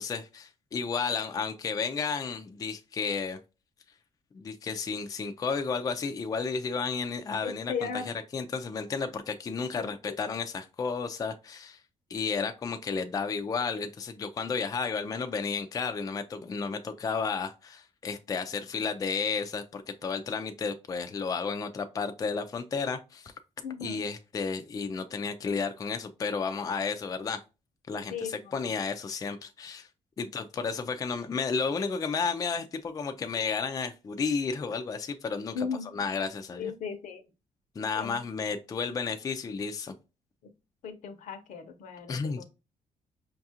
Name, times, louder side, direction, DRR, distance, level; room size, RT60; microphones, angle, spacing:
voice 1, 0.0-3.4 4.3-11.8 12.1-23.3 23.8-27.4 27.9-29.9 30.2-36.7 37.8-40.0 42.1-42.4, left 5 dB, 25° left, 0.4 m, -32 dB
voice 2, 7.4-8.1 9.8-10.1 23.6-24.0 28.1-28.5 35.5-36.0 36.5-37.2 38.0-38.2 40.8-42.4, left 6 dB, 75° left, 0.7 m, -37 dB
5.1 x 2.4 x 2.7 m
cardioid pair, 135°, 13 cm